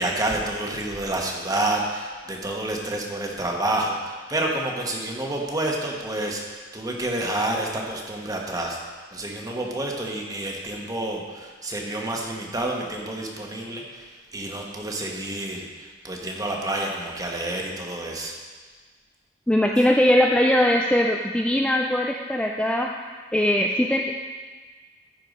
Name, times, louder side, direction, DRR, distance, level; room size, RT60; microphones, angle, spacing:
voice 1, 0.0-8.8 9.1-18.4, right 1 dB, 20° right, -1 dB, 1.3 m, -29 dB
voice 2, 19.5-22.9 23.3-24.1, left 1 dB, 5° left, 0 dB, 0.4 m, -20 dB
14.0 x 4.8 x 5.3 m, 1.5 s
head